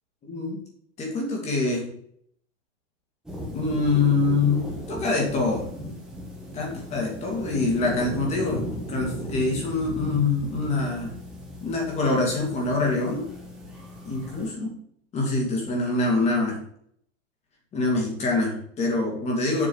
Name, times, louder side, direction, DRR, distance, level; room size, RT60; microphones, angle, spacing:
voice 1, 0.2-0.6 1.0-1.9 3.5-5.6 6.5-11.1 11.6-13.3 14.0-14.7 15.1-16.6 17.7-19.7, left 3 dB, 15° left, 0 dB, 2.6 m, -25 dB
sound 1, 3.3-14.5, equal, ahead, 1.5 m, -36 dB
7.6 x 6.2 x 7.1 m, 0.67 s
supercardioid pair, 175°, 37 cm